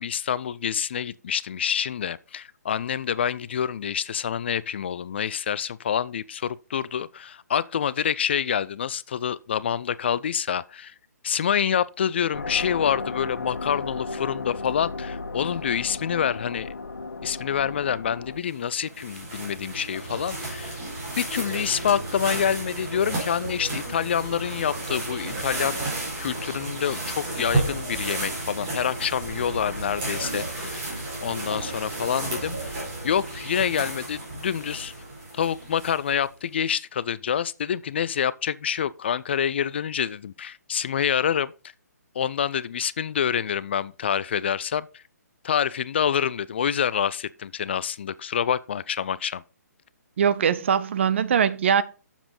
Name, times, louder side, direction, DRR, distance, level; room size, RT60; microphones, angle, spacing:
voice 1, 0.0-10.9 11.2-16.7 17.2-20.8 21.2-25.8 26.2-34.9 35.3-41.5 42.1-45.0 45.4-49.4, left 8 dB, 40° left, 0.3 m, -27 dB
sound 1, 12.3-18.4, left 3 dB, 70° left, 0.7 m, -34 dB
sound 2, 18.5-36.2, right 2 dB, 25° right, 4.4 m, -32 dB
voice 2, 50.2-51.8, right 7 dB, 45° right, 0.6 m, -21 dB
8.4 x 7.2 x 4.0 m
figure-of-eight pair, 135°, 9 cm